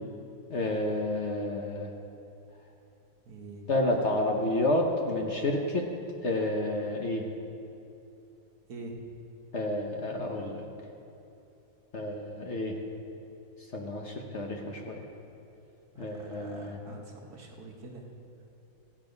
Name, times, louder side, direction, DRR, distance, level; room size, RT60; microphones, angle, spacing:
voice 1, 0.5-1.9 3.7-5.9 6.2-7.2 9.5-10.6 11.9-12.8 13.7-15.0 16.0-16.8, left 1 dB, 55° left, 1 dB, 0.8 m, -30 dB
voice 2, 3.3-3.6 8.7-8.9 16.1-18.0, right 3 dB, 50° right, 0 dB, 1.7 m, -45 dB
15.0 x 8.9 x 5.2 m, 2.8 s
omnidirectional pair, 2.4 m